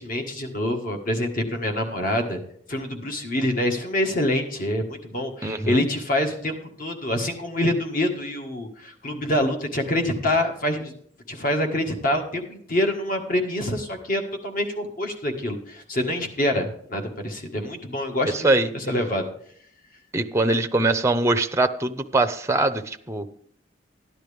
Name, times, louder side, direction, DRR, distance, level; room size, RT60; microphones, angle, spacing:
voice 1, 0.0-2.4 2.7-10.9 11.3-18.5 18.7-19.3, left 1 dB, 50° left, 4 dB, 1.6 m, -26 dB
voice 2, 5.4-5.9 18.3-18.7 20.1-23.3, right 2 dB, 15° right, 8 dB, 0.6 m, -22 dB
14.0 x 10.5 x 3.5 m, 0.63 s
head